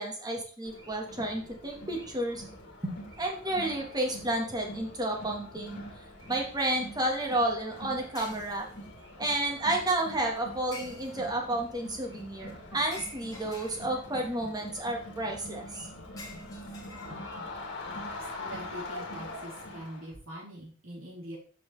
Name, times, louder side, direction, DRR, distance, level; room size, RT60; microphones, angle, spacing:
voice 1, 0.0-2.4 2.8-5.8 6.3-8.7 9.2-15.9 17.1-17.4, right 1 dB, 20° right, 1 dB, 1.5 m, -31 dB
Crowd, 0.6-20.1, left 1 dB, 60° left, 1.9 m, -44 dB
sound 1, 8.1-9.0 10.7-11.5 12.9-14.2 16.2-17.5, left 2 dB, 20° left, 1.8 m, -48 dB
voice 2, 18.4-21.4, equal, 75° right, -5 dB, 3.9 m, -43 dB
7.1 x 6.2 x 3.3 m, 0.43 s
head